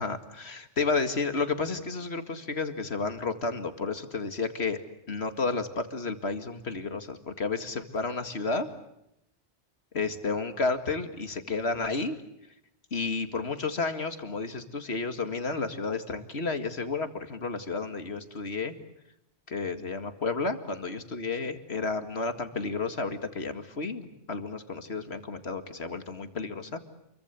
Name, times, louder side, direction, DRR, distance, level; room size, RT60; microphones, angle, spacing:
voice 1, 0.0-4.8 5.1-8.7 9.9-12.2 12.9-18.7 19.5-26.8, left 4 dB, 70° left, 9 dB, 2.4 m, -31 dB
28.5 x 23.5 x 8.3 m, 0.82 s
omnidirectional pair, 1.1 m